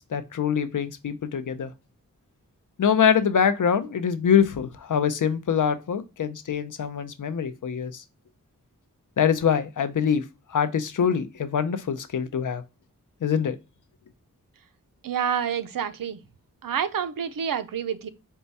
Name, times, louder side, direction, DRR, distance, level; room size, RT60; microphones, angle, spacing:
voice 1, 0.1-1.7 2.8-7.9 9.2-10.2 10.5-12.6 13.2-13.6, left 7 dB, 65° left, 0.6 m, -24 dB
voice 2, 15.0-16.2 16.6-18.1, right 8 dB, 75° right, 0.6 m, -28 dB
4.5 x 2.2 x 4.0 m
wide cardioid pair, 100°, 33 cm